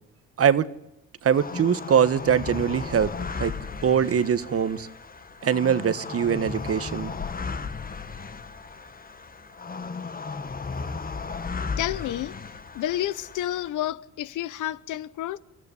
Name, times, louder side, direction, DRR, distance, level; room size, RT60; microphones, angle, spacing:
voice 1, 1.2-3.1 3.4-3.5 3.8-4.9 5.4-7.1, right 8 dB, 50° right, 1.4 m, -22 dB
sound 1, 1.3-13.7, left 5 dB, 30° left, 1.4 m, -35 dB
voice 2, 11.8-12.3 12.7-15.4, left 13 dB, 80° left, 1.0 m, -30 dB
29.0 x 14.0 x 9.8 m
cardioid pair, 90°, 30 cm